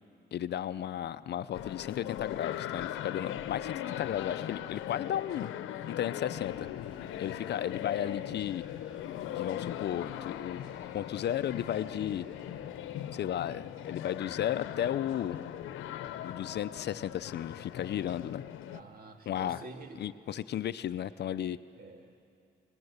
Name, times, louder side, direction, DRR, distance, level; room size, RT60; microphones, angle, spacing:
voice 1, 0.3-5.5 5.9-6.7 7.2-8.6 9.3-10.6 10.9-12.3 13.1-15.4 16.2-18.4 19.3-19.7 20.0-21.6, left 10 dB, 60° left, 14 dB, 0.6 m, -34 dB
sound 1, 1.5-18.8, left 11 dB, 85° left, 0.8 m, -39 dB
sound 2, 6.2-13.2, left 1 dB, 5° right, 4.6 m, -58 dB
voice 2, 18.7-20.4 21.8-22.1, right 2 dB, 45° right, 5 dB, 2.2 m, -49 dB
23.0 x 20.5 x 8.1 m, 2.5 s
cardioid pair, 90°, 20 cm